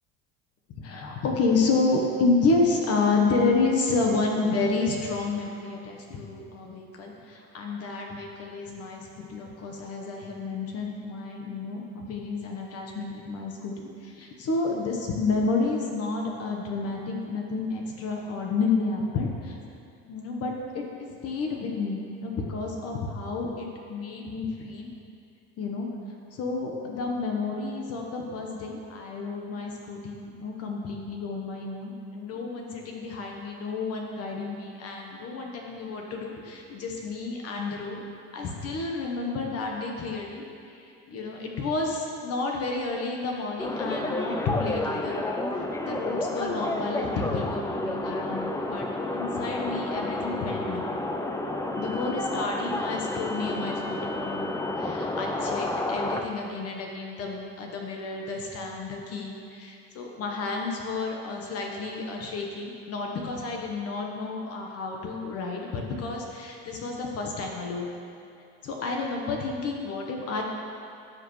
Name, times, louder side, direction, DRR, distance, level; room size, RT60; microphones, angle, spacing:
voice 1, 0.8-19.6 20.1-24.9 25.6-25.9 26.3-38.0 38.3-40.8 41.1-45.2 45.5-48.8 49.1-50.9 51.8-67.9 68.6-70.4, left 3 dB, 50° left, 0 dB, 1.2 m, -30 dB
sound 1, 43.6-56.2, left 2 dB, 10° left, 0.5 m, -30 dB
15.0 x 5.3 x 3.2 m, 2.5 s
supercardioid pair, 110°, 30 cm